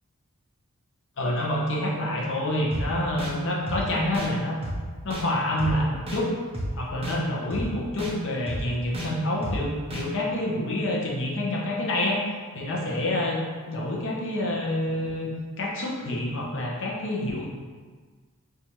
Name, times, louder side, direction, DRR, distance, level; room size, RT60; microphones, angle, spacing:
voice 1, 1.2-4.6 5.0-6.3 6.7-12.2 12.5-13.4 13.7-15.3 15.6-17.4, left 1 dB, 60° left, -3 dB, 0.7 m, -27 dB
sound 1, 2.7-2.8 3.2-3.3 3.7-3.8 4.1-4.3 4.6-4.8 5.1-5.2 5.6-5.7 6.1-6.2 6.5-6.7 7.0-7.2 7.5-7.6 8.0-8.1 8.5-8.6 8.9-9.1 9.4-9.6 9.9-10.0, equal, 25° right, 0.6 m, -31 dB
4.4 x 2.4 x 2.8 m, 1.5 s
head